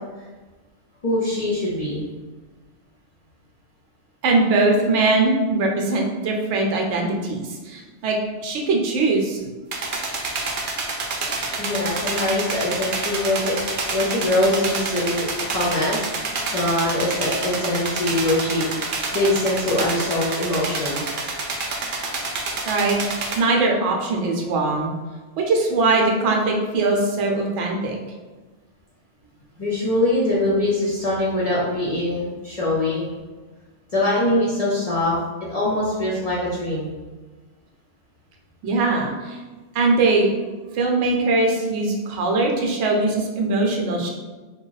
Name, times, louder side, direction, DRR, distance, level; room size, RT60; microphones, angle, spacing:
voice 1, 1.0-2.0 11.6-13.6 13.9-16.0 16.5-21.0 29.6-33.1 33.9-35.2 35.5-36.9, left 1 dB, 45° left, -7 dB, 0.5 m, -23 dB
voice 2, 4.2-8.2 8.4-9.4 22.6-23.0 23.4-24.9 25.4-28.0 38.6-39.4 39.7-40.3 40.7-44.1, right 3 dB, 80° right, 1 dB, 0.9 m, -21 dB
sound 1, 9.7-23.4, right 3 dB, 60° right, 0.6 m, -28 dB
2.9 x 2.3 x 3.9 m, 1.3 s
omnidirectional pair, 1.2 m